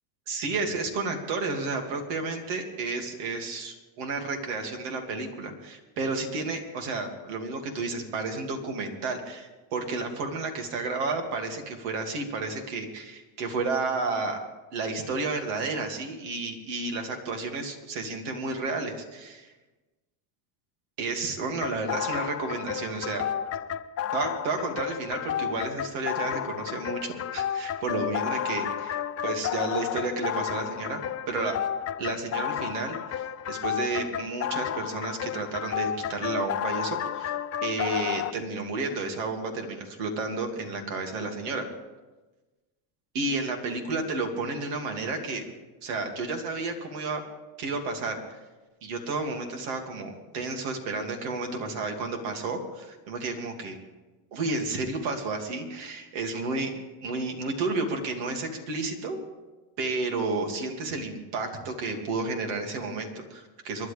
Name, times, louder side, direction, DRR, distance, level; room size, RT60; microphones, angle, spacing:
voice 1, 0.3-14.4 14.7-19.5 21.0-23.3 24.1-29.0 29.2-31.6 32.0-37.3 37.6-41.7 43.1-45.5 45.8-47.2 47.6-48.2 48.8-53.8 54.3-56.7 57.0-59.2 59.8-63.9, right 3 dB, 80° right, 3 dB, 2.8 m, -31 dB
sound 1, 21.6-38.3, left 10 dB, 30° left, 0.5 m, -32 dB
28.5 x 11.0 x 3.5 m, 1.2 s
supercardioid pair, 110°, 49 cm